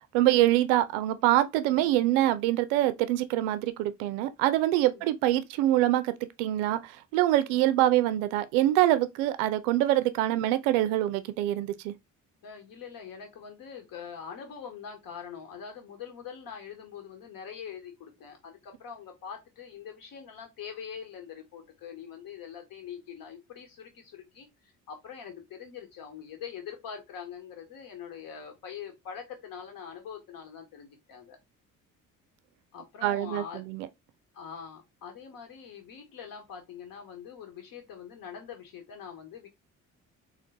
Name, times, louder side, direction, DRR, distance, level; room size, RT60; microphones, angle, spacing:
voice 1, 0.1-6.1 6.4-11.9 33.0-33.9, right 14 dB, 65° right, 0.5 m, -25 dB
voice 2, 12.4-31.4 32.7-33.6 34.3-39.5, left 7 dB, 55° left, 1.3 m, -43 dB
3.8 x 2.2 x 3.4 m
figure-of-eight pair, 45°, 42 cm